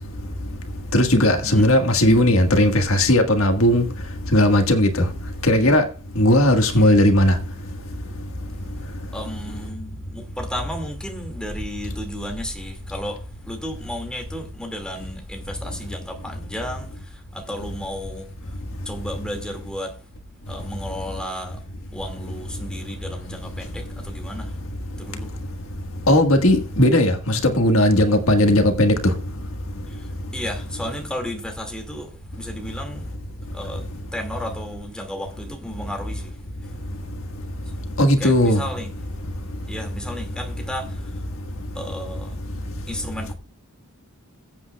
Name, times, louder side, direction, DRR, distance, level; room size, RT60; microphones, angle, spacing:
voice 1, 0.9-3.8 4.3-5.0 5.4-5.8 6.1-7.3 26.1-28.9 38.0-38.6, left 1 dB, 65° left, 1.6 m, -17 dB
voice 2, 1.4-1.7 6.8-7.0 9.1-13.2 13.5-18.3 18.9-20.0 20.5-21.6 21.9-24.5 25.0-25.3 30.3-33.0 33.5-33.8 34.1-36.3 38.2-38.9 39.7-41.1 41.7-42.4 42.9-43.3, equal, 5° left, 2.1 m, -33 dB
21.0 x 8.5 x 2.3 m
head